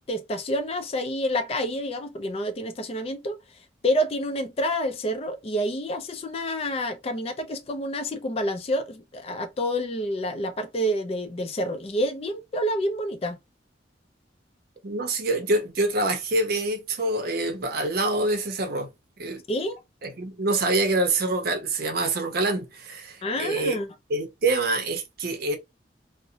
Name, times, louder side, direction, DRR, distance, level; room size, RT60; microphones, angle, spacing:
voice 1, 0.1-3.4 3.8-13.4 19.5-19.8 23.2-23.9, equal, 35° left, 0.4 m, -28 dB
voice 2, 14.8-18.9 19.2-19.4 20.0-23.8 24.1-25.6, right 2 dB, 55° right, 0.6 m, -26 dB
2.6 x 2.0 x 2.7 m
head